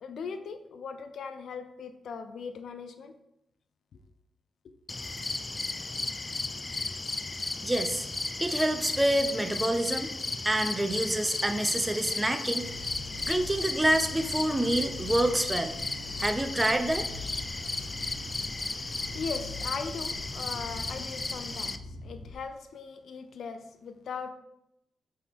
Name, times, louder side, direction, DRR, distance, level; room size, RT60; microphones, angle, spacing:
voice 1, 0.0-3.1 18.7-24.3, left 5 dB, 75° left, 8 dB, 0.6 m, -39 dB
sound 1, 4.9-21.8, left 3 dB, 30° left, 0.4 m, -35 dB
voice 2, 7.6-8.1 8.4-10.1 10.4-12.6 13.3-15.7 16.2-17.4, right 1 dB, 15° right, 8 dB, 0.7 m, -27 dB
sound 2, 12.6-22.3, left 1 dB, 65° right, 1.0 m, -44 dB
7.7 x 4.4 x 3.7 m, 0.84 s
cardioid pair, 80°, 0 cm